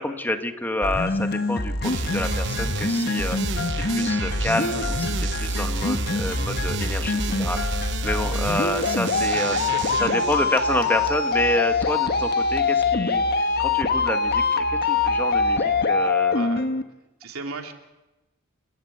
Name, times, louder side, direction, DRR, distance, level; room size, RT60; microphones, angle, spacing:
voice 1, 0.0-3.5 3.9-9.6 10.0-16.4, left 1 dB, 10° left, 6 dB, 1.6 m, -28 dB
sound 1, 0.8-16.8, left 3 dB, 50° left, 1.4 m, -24 dB
sound 2, 1.8-11.5, right 5 dB, 60° right, 1.1 m, -33 dB
sound 3, 4.1-15.8, equal, 90° left, 1.6 m, -40 dB
voice 2, 9.3-10.0 16.3-16.6 17.2-17.7, right 3 dB, 80° right, 3 dB, 3.1 m, -35 dB
29.0 x 16.0 x 8.1 m, 1.0 s
head